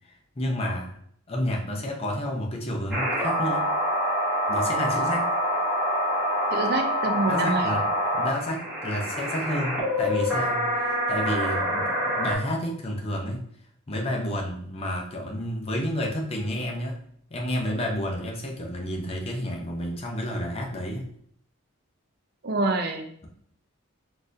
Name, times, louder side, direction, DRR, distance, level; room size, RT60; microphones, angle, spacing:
voice 1, 0.0-1.0 1.3-3.7 4.5-5.3 7.3-7.9 8.1-13.5 13.9-17.0 17.3-21.1, equal, 25° left, 0 dB, 0.5 m, -30 dB
sound 1, 2.9-12.4, equal, 5° right, 0.9 m, -26 dB
voice 2, 6.5-7.7 22.4-23.1, right 2 dB, 50° right, 5 dB, 0.4 m, -26 dB
3.9 x 2.5 x 2.6 m, 0.65 s
head